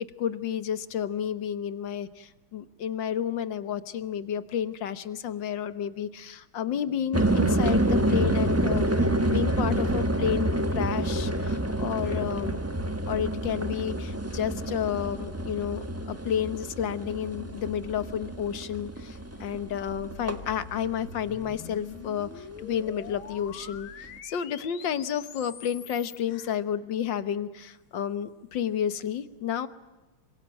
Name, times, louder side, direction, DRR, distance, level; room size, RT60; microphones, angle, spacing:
voice 1, 0.0-8.9 9.3-12.6 13.1-29.7, left 9 dB, 65° left, 14 dB, 1.8 m, -31 dB
sound 1, 7.1-21.7 22.0-22.6, right 1 dB, 10° right, 1.1 m, -28 dB
sound 2, 19.5-26.2, left 8 dB, 85° left, 2.2 m, -45 dB
26.5 x 23.5 x 9.0 m, 1.1 s
omnidirectional pair, 2.2 m